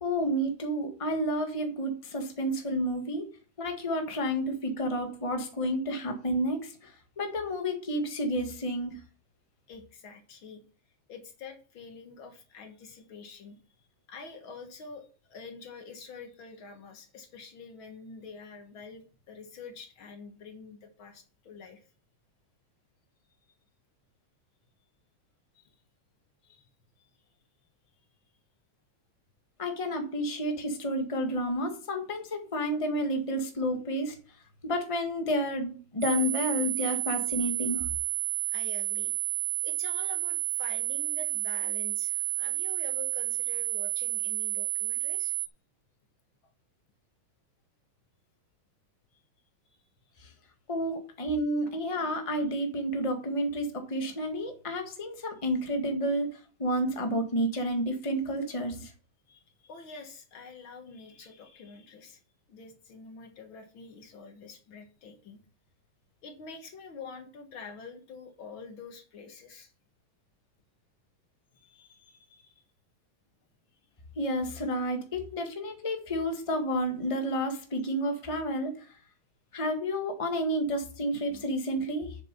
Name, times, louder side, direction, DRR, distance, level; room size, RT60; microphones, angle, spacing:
voice 1, 0.0-3.3 3.6-9.0 29.6-34.2 34.6-37.9 50.2-50.3 50.7-58.9 74.2-79.0 79.5-82.2, equal, 15° left, 5 dB, 1.4 m, -30 dB
voice 2, 9.7-10.6 11.1-13.6 14.1-21.9 25.5-25.8 26.4-26.7 30.2-30.3 38.5-39.1 39.6-45.4 46.4-46.5 49.1-49.2 59.3-62.2 62.5-65.4 66.2-69.7 71.5-72.6 73.7-73.8, left 4 dB, 70° left, 6 dB, 2.2 m, -47 dB
sound 1, 36.0-45.5, right 18 dB, 60° right, 1.2 m, -31 dB
7.5 x 6.9 x 6.7 m, 0.39 s
omnidirectional pair, 2.3 m